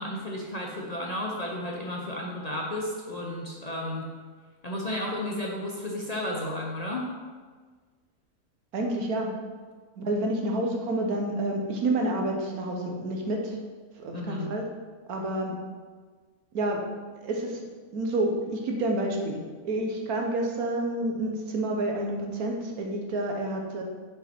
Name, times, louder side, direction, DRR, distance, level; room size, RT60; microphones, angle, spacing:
voice 1, 0.0-4.1 4.6-7.1 14.1-14.5, left 1 dB, 35° left, -2 dB, 0.7 m, -33 dB
voice 2, 8.7-9.3 10.0-13.6 14.0-14.6 15.1-15.6 16.5-16.8 17.2-17.6 17.9-23.8, right 1 dB, 85° right, 1 dB, 1.5 m, -29 dB
6.1 x 5.7 x 4.4 m, 1.5 s
omnidirectional pair, 1.5 m